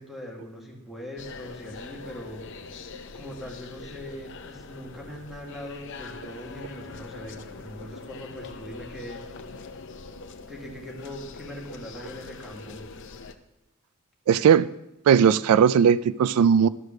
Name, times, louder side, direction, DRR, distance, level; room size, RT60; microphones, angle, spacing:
voice 1, 0.0-2.4 3.1-9.3 10.5-12.8, equal, ahead, -2 dB, 1.9 m, -41 dB
sound 1, 1.2-13.3, left 4 dB, 55° left, 0.7 m, -43 dB
voice 2, 14.3-14.7 15.1-16.7, right 7 dB, 85° right, 18 dB, 0.3 m, -18 dB
12.0 x 4.8 x 6.5 m, 0.91 s
head